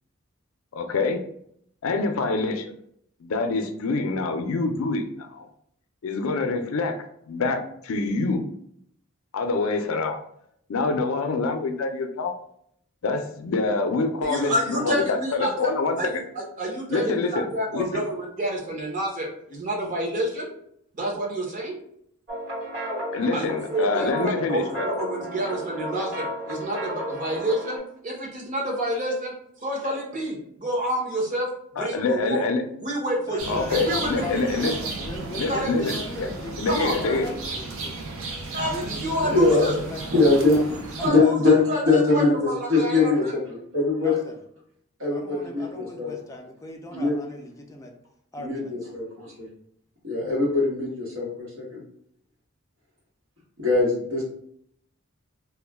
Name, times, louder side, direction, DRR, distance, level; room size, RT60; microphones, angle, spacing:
voice 1, 0.7-1.2 1.8-2.7 3.2-5.0 5.3-5.5 6.0-7.0 7.3-8.5 9.3-10.2 10.7-12.3 13.0-16.2 16.9-17.5 17.7-17.9 23.1-24.9 31.8-32.6 33.5-34.7 35.4-36.3 36.6-37.3, left 3 dB, 85° left, 6 dB, 0.4 m, -26 dB
voice 2, 14.2-15.7 16.0-20.5 20.9-21.8 23.3-29.3 29.6-31.5 31.7-32.5 32.8-34.6 35.5-36.0 36.7-37.3 38.5-39.7 41.0-41.4 41.7-43.3, right 1 dB, 40° right, -3 dB, 0.8 m, -29 dB
sound 1, 22.3-27.8, equal, 55° right, 1.2 m, -33 dB
voice 3, 33.3-38.0 38.7-41.4 41.8-42.0 44.0-44.3 45.1-47.9 48.3-48.8, left 1 dB, 15° left, 3 dB, 0.3 m, -39 dB
sound 2, 33.4-41.1, right 3 dB, 70° right, 0.5 m, -34 dB
voice 4, 39.3-39.6 40.1-40.6 41.0-44.2 45.0-46.1 46.9-47.1 48.4-49.5 50.0-51.8 53.6-54.2, left 3 dB, 85° right, -4 dB, 1.2 m, -22 dB
2.3 x 2.1 x 3.4 m, 0.70 s
head